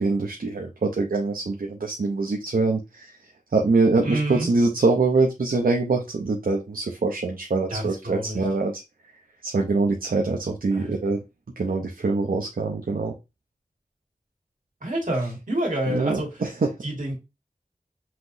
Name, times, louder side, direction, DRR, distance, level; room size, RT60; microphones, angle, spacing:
voice 1, 0.0-3.1 3.5-8.8 9.4-11.2 11.6-13.1 15.9-16.7, right 3 dB, 85° right, 0.7 m, -24 dB
voice 2, 4.0-4.5 7.7-8.5 10.7-10.9 14.8-16.4 16.8-17.1, right 1 dB, 65° right, 2.0 m, -28 dB
5.8 x 2.9 x 2.6 m
wide cardioid pair, 60°, 14 cm